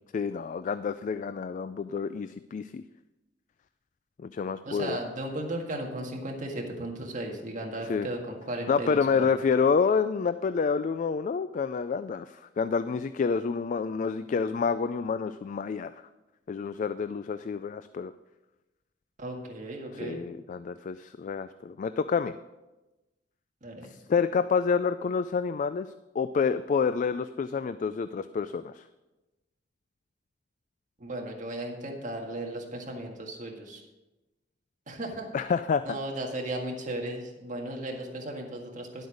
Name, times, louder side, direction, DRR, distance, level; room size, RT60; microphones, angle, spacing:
voice 1, 0.1-2.8 4.2-5.0 7.9-8.1 8.7-15.9 16.5-18.1 19.9-22.4 23.8-25.9 26.1-28.8 35.3-36.0, left 5 dB, 45° left, 12 dB, 0.3 m, -28 dB
voice 2, 4.6-9.3 19.2-20.2 23.6-23.9 31.0-33.8 34.9-35.3 35.8-39.1, right 1 dB, 45° right, 1 dB, 1.8 m, -36 dB
11.0 x 8.0 x 5.0 m, 1.1 s
head